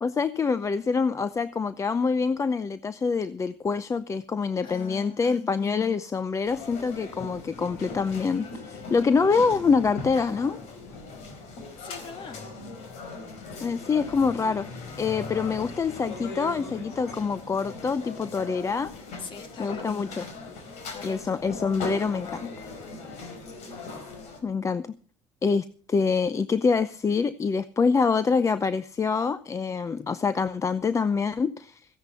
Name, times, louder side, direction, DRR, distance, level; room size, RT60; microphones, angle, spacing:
voice 1, 0.0-10.6 13.6-14.7 15.0-18.9 19.6-20.2 21.0-22.5 24.4-24.9 25.4-31.9, left 5 dB, 25° left, 14 dB, 0.6 m, -25 dB
voice 2, 4.6-5.4 11.8-12.5 19.2-20.2 20.9-21.2, left 5 dB, 45° left, 8 dB, 2.0 m, -42 dB
sound 1, 6.4-24.4, left 3 dB, 70° left, 4.0 m, -39 dB
15.0 x 10.5 x 5.5 m, 0.44 s
cardioid pair, 110°, 12 cm